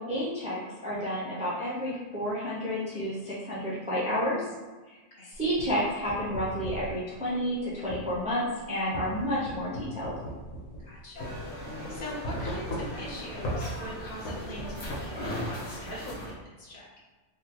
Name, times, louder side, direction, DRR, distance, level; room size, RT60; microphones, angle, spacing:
voice 1, 0.1-4.5 4.9-5.0 5.4-10.1, equal, 10° right, -8 dB, 0.3 m, -30 dB
sound 1, 5.3-6.9 7.9-8.1 8.9-10.9 11.2-11.3 12.2-13.1 13.4-13.6 14.3-15.0, equal, 80° left, 1.0 m, -36 dB
voice 2, 10.8-16.9, left 1 dB, 45° left, -6 dB, 0.9 m, -42 dB
sound 2, 11.1-16.3, equal, 65° left, 1.2 m, -38 dB
3.6 x 2.2 x 2.9 m, 1.2 s
omnidirectional pair, 1.4 m